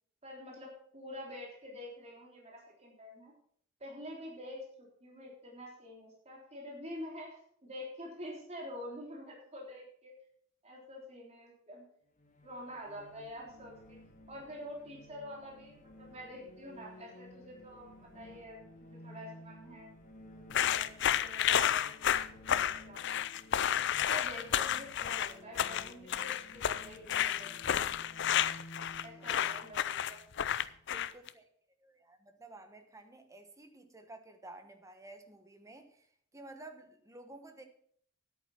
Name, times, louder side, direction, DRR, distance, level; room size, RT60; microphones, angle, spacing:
voice 1, 0.2-3.3 3.8-10.1 10.6-11.8 12.4-14.0 14.3-19.9 20.2-23.0 23.7-27.8 29.0-30.2, equal, 35° right, -2 dB, 3.6 m, -47 dB
sound 1, 12.2-30.8, left 1 dB, 40° left, 1.5 m, -55 dB
sound 2, 20.5-31.3, left 10 dB, 60° left, 0.5 m, -31 dB
voice 2, 30.9-31.4 31.8-37.6, right 2 dB, 15° right, 7 dB, 1.2 m, -52 dB
10.5 x 8.9 x 5.8 m, 0.64 s
head